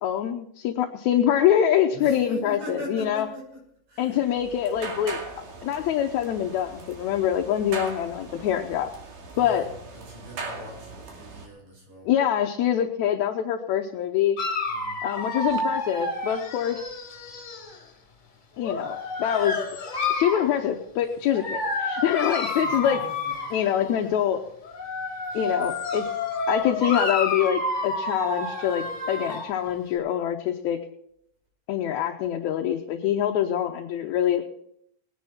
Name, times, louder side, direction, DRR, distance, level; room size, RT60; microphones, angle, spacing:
voice 1, 0.0-3.3 4.0-5.2 5.6-8.9 9.4-9.7 12.1-14.4 15.0-16.9 18.6-19.6 20.1-23.0 23.5-24.4 25.3-26.1 26.5-30.8 31.7-34.4, left 10 dB, 75° left, 3 dB, 2.0 m, -25 dB
voice 2, 1.9-4.3 9.3-12.1 14.7-15.1 22.5-23.5, equal, 60° right, -1 dB, 7.0 m, -41 dB
sound 1, 4.1-11.5, right 4 dB, 80° right, 3.9 m, -40 dB
Dog, 14.4-17.8 18.6-20.5 21.3-23.9 24.6-29.5, left 2 dB, 25° left, 3.7 m, -29 dB
20.0 x 10.0 x 4.3 m, 0.72 s
omnidirectional pair, 3.7 m